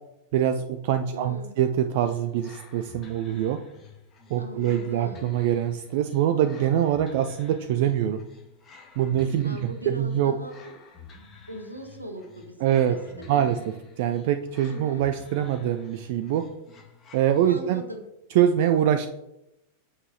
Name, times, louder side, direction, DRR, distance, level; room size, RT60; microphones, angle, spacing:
voice 1, 0.3-3.6 4.3-8.2 9.0-10.3 12.6-13.0 13.3-16.4 17.1-17.8 18.3-19.1, right 10 dB, 50° right, 9 dB, 0.4 m, -24 dB
voice 2, 1.1-1.5 4.4-5.3 9.4-10.7 11.5-12.6 12.8-13.7 14.6-15.0 17.5-18.0, right 1 dB, 85° right, 4 dB, 1.2 m, -40 dB
Escaping Time, 1.9-17.9, left 4 dB, 25° left, 2.0 m, -50 dB
8.6 x 6.7 x 2.9 m, 0.87 s
figure-of-eight pair, 90°, 0 cm